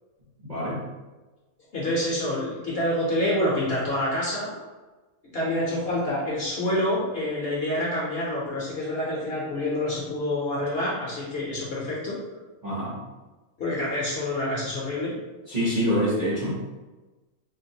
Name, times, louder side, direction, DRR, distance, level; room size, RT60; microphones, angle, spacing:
voice 1, 0.4-0.8 12.6-13.0 15.5-16.5, equal, 40° right, -8 dB, 0.7 m, -25 dB
voice 2, 1.7-4.6 5.3-12.2 13.6-15.1, left 1 dB, 55° left, -5 dB, 0.8 m, -27 dB
3.8 x 2.1 x 2.7 m, 1.2 s
omnidirectional pair, 1.5 m